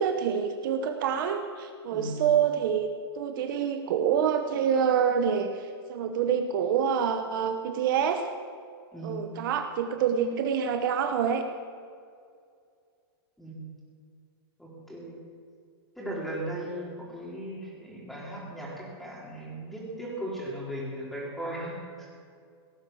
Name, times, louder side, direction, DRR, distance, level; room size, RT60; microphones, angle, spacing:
voice 1, 0.0-2.9 3.1-8.2 9.0-11.4, right 8 dB, 55° right, 6 dB, 1.1 m, -26 dB
voice 2, 1.9-2.2 8.9-9.3 13.4-13.6 14.6-15.2 16.0-22.1, right 1 dB, ahead, -4 dB, 4.2 m, -37 dB
17.5 x 9.7 x 7.4 m, 2.3 s
hypercardioid pair, 145°, 13 cm